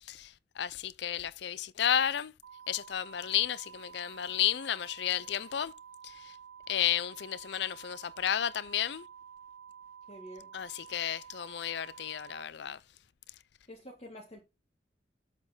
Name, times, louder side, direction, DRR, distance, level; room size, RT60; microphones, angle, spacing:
voice 1, 0.1-2.3 2.7-5.7 6.0-6.3 6.7-9.0 10.5-12.8, left 10 dB, 65° left, 0.4 m, -32 dB
sound 1, 2.4-12.4, right 7 dB, 90° right, 1.2 m, -51 dB
voice 2, 10.1-10.5 13.7-14.4, equal, 35° left, 1.8 m, -47 dB
8.0 x 4.0 x 5.5 m
head